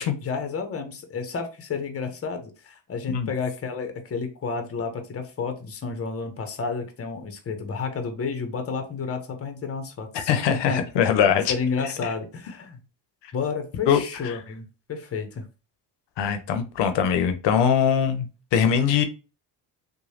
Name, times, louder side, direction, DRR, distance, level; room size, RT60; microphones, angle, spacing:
voice 1, 0.2-12.8 13.3-15.5, left 5 dB, 30° left, 6 dB, 0.8 m, -31 dB
voice 2, 10.1-11.5 12.0-12.1 13.9-14.0 16.2-18.3 18.5-19.0, left 8 dB, 70° left, 8 dB, 0.7 m, -21 dB
3.0 x 2.2 x 2.7 m, 0.31 s
supercardioid pair, 75°, 45 cm